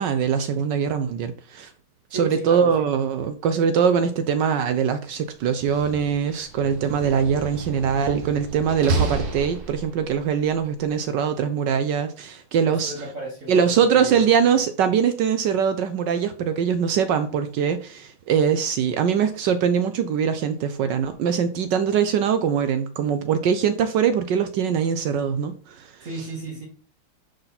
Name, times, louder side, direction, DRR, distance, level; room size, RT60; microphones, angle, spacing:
voice 1, 0.0-1.7 2.1-12.9 13.5-25.9, right 7 dB, 70° right, 1.1 m, -22 dB
voice 2, 2.1-2.9 12.7-14.2 26.0-26.7, right 2 dB, 40° right, 1.9 m, -34 dB
Slam, 5.4-10.1, right 3 dB, 90° right, 2.6 m, -30 dB
9.9 x 4.2 x 4.1 m
omnidirectional pair, 2.3 m